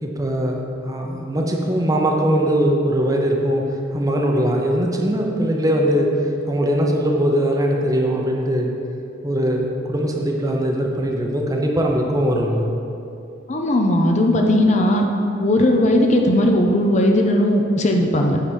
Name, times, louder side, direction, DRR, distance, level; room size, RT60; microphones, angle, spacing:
voice 1, 0.0-3.6 3.9-6.1 6.5-8.7 9.2-12.7, equal, 20° right, 0 dB, 0.7 m, -20 dB
voice 2, 13.5-15.1 15.4-18.4, left 1 dB, 35° left, 2 dB, 0.6 m, -17 dB
9.1 x 4.1 x 6.3 m, 2.7 s
head